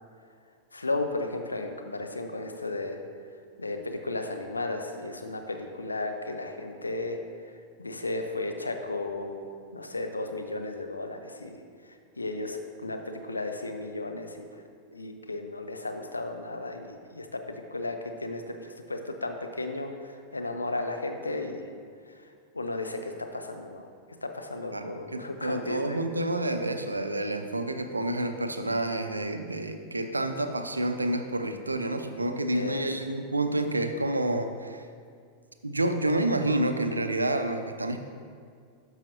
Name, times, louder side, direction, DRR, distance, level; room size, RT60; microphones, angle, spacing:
voice 1, 0.7-3.0 3.6-7.2 7.8-9.5 9.7-11.6 12.2-14.5 14.9-21.7 22.5-23.9 24.2-26.1 32.5-32.8, left 2 dB, 80° left, 5 dB, 0.6 m, -34 dB
voice 2, 24.7-34.9 35.6-38.0, right 1 dB, 80° right, 7 dB, 0.5 m, -29 dB
12.5 x 5.7 x 2.6 m, 2.2 s
figure-of-eight pair, 90°, 0 cm